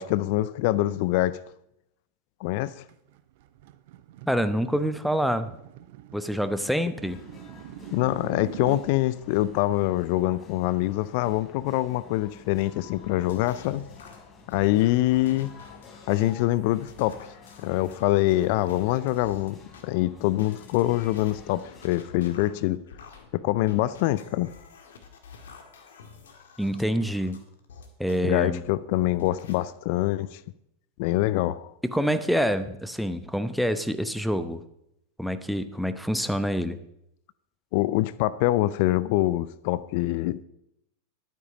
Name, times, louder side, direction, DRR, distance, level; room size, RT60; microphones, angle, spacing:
voice 1, 0.0-1.4 2.4-2.8 7.9-13.8 14.5-15.5 16.1-17.2 17.6-22.8 23.3-24.5 28.2-30.4 31.0-31.7 37.7-40.4, left 16 dB, 55° left, 0.4 m, -25 dB
sound 1, 2.9-8.9, right 15 dB, 60° right, 0.6 m, -44 dB
voice 2, 4.2-5.5 6.1-7.2 26.6-27.4 28.0-28.6 31.8-34.6 35.2-36.8, equal, ahead, 0.8 m, -26 dB
sound 2, 7.1-21.9, left 5 dB, 20° left, 4.3 m, -50 dB
sound 3, 13.1-19.8 20.3-28.2 28.7-29.6, left 5 dB, 70° left, 1.7 m, -48 dB
11.5 x 9.2 x 5.0 m
figure-of-eight pair, 90°, 0 cm